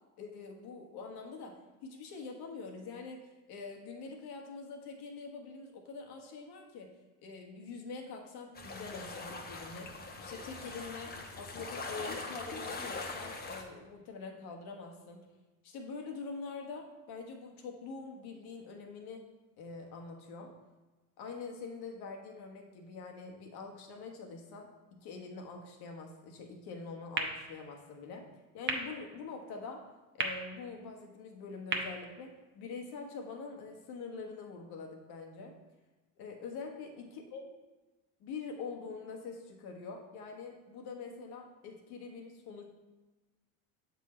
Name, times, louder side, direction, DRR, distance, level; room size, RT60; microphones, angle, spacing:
voice 1, 0.2-6.9 7.2-9.9 10.2-15.2 15.6-19.2 19.6-20.5 21.2-28.3 28.5-29.8 30.1-35.6 36.2-37.4 38.2-42.7, left 4 dB, 60° left, 2 dB, 1.3 m, -45 dB
sound 1, 8.5-13.6, left 3 dB, 20° left, 1.0 m, -42 dB
sound 2, 27.1-33.1, right 3 dB, 25° right, 0.9 m, -41 dB
7.2 x 4.0 x 4.3 m, 1.2 s
supercardioid pair, 85°, 43 cm